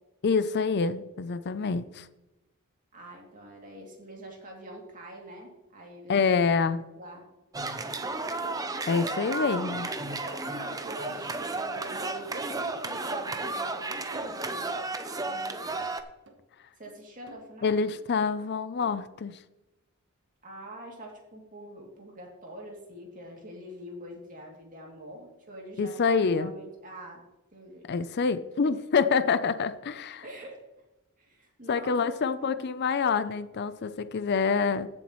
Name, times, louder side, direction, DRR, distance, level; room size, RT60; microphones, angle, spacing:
voice 1, 0.2-2.1 6.1-6.8 8.9-9.9 17.6-19.4 25.8-26.5 27.9-30.2 31.7-34.9, left 5 dB, 50° left, 13 dB, 0.5 m, -26 dB
voice 2, 2.9-6.1 6.9-7.2 10.1-15.9 16.8-17.8 20.4-27.2 27.5-27.9 30.2-30.6 31.2-32.7, right 1 dB, 40° right, -1 dB, 2.6 m, -45 dB
sound 1, 7.5-16.0, right 3 dB, 15° right, 0.6 m, -33 dB
sound 2, 10.1-10.2 10.7-11.2 11.6-11.7 12.2-12.7 13.2-13.3 13.7-13.9 14.1-14.9 15.3-16.4 16.9-17.5 17.8-18.0 18.4-19.1, right 1 dB, 55° right, 1.3 m, -53 dB
15.5 x 7.1 x 3.1 m, 0.99 s
head